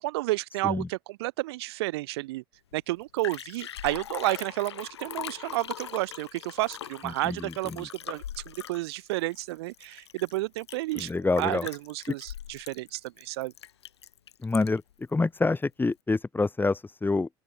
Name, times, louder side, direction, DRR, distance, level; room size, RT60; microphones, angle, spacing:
voice 1, 0.0-2.4 2.7-11.1 11.4-13.5, right 19 dB, 75° right, 2.9 m, -31 dB
Liquid, 2.7-2.8 3.0-14.9 15.4-15.5, left 10 dB, 85° left, 1.8 m, -41 dB
voice 2, 7.0-7.9 10.9-11.7 14.4-17.3, left 3 dB, 15° left, 1.3 m, -27 dB
open air
hypercardioid pair, 70°, 14 cm